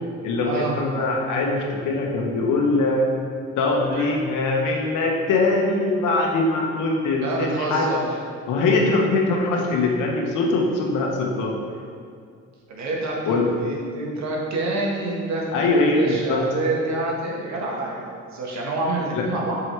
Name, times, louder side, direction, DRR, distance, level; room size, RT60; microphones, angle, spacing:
voice 1, 0.2-3.1 3.6-7.9 8.5-11.5 13.3-13.5 15.5-16.4 19.1-19.3, left 3 dB, 85° left, 0 dB, 1.1 m, -22 dB
voice 2, 3.7-4.1 7.2-8.0 12.7-19.6, right 2 dB, 65° right, -3 dB, 1.6 m, -27 dB
6.0 x 4.9 x 4.5 m, 2.2 s
cardioid pair, 90°, 30 cm